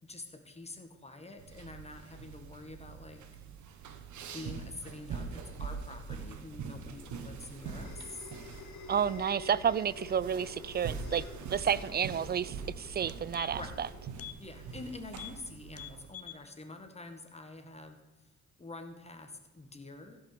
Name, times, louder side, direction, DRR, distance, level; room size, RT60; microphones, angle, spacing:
voice 1, 0.0-3.2 4.3-8.2 11.7-12.0 13.5-13.8 14.4-18.3 18.6-20.2, left 2 dB, 20° left, 1.9 m, -47 dB
sound 1, 1.4-16.1, right 5 dB, 70° right, 1.3 m, -44 dB
sound 2, 6.9-15.5, left 4 dB, 70° left, 1.9 m, -50 dB
voice 2, 8.9-11.2 11.5-13.9, right 8 dB, 35° right, 0.4 m, -31 dB
sound 3, 12.5-12.6 12.9-13.8 14.1-14.4 14.7-14.8 15.1-15.4 15.7-16.4 16.8-16.9, left 12 dB, 50° left, 0.7 m, -46 dB
15.5 x 5.6 x 6.9 m
cardioid pair, 90°, 30 cm